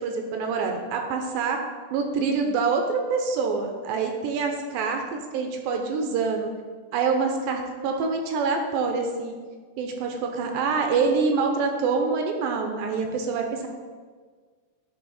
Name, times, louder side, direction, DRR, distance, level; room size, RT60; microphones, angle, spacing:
voice 1, 0.0-1.6 1.9-6.5 6.9-9.3 9.8-13.7, right 4 dB, 80° right, 3 dB, 2.3 m, -26 dB
10.0 x 4.1 x 4.1 m, 1.5 s
omnidirectional pair, 4.3 m